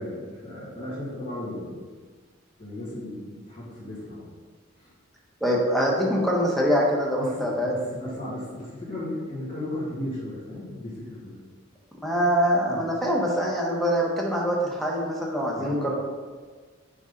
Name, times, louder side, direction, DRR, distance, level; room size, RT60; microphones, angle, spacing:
voice 1, 0.0-1.8 2.6-4.3 4.8-4.9 7.2-11.4 12.6-12.8 15.5-15.9, left 1 dB, 40° left, -13 dB, 2.0 m, -35 dB
voice 2, 5.4-7.7 12.0-15.9, equal, ahead, -3 dB, 1.0 m, -24 dB
6.1 x 4.0 x 5.2 m, 1.5 s
head